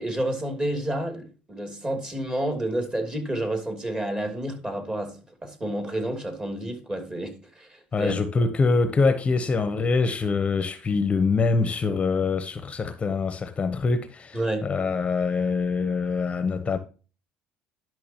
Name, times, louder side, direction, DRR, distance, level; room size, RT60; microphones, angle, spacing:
voice 1, 0.0-8.1 14.3-14.7, right 1 dB, 20° right, 2.8 m, -30 dB
voice 2, 7.9-16.8, left 4 dB, 30° left, 0.9 m, -24 dB
11.0 x 6.1 x 2.9 m
supercardioid pair, 80°, 4 cm